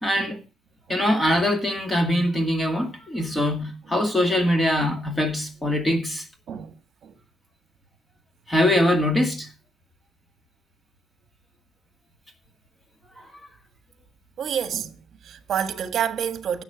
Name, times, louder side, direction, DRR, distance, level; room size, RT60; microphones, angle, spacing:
voice 1, 0.0-0.4 0.9-6.2 8.5-9.5 13.2-13.3, left 1 dB, 10° left, 2.1 m, -22 dB
voice 2, 14.4-16.6, right 8 dB, 45° right, 1.5 m, -29 dB
12.0 x 7.1 x 7.8 m
cardioid pair, 170°, 0 cm